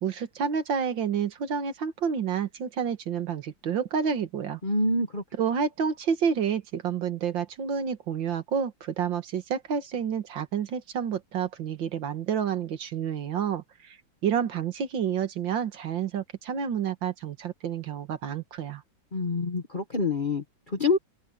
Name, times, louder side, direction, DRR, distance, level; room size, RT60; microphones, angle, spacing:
voice 1, 0.0-4.6 5.4-14.0 14.2-18.8, right 7 dB, 75° right, 2.3 m, -29 dB
voice 2, 4.6-5.2 19.1-21.0, left 2 dB, 30° left, 1.4 m, -26 dB
open air
omnidirectional pair, 2.1 m